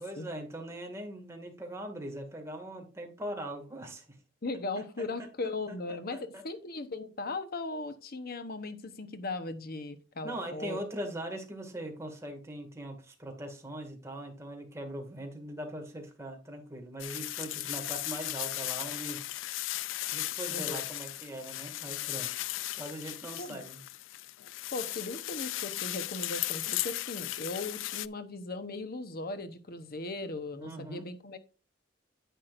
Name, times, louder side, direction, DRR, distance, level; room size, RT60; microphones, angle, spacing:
voice 1, 0.0-4.0 4.8-5.0 6.1-6.4 10.2-19.2 20.1-22.3 22.7-23.8 30.6-31.1, right 1 dB, 15° right, 2 dB, 2.1 m, -41 dB
voice 2, 4.4-11.1 20.5-20.8 23.4-23.6 24.7-31.4, left 2 dB, 55° left, 10 dB, 1.0 m, -38 dB
sound 1, 17.0-28.1, left 16 dB, 80° left, 0.4 m, -36 dB
10.0 x 8.4 x 2.5 m, 0.32 s
head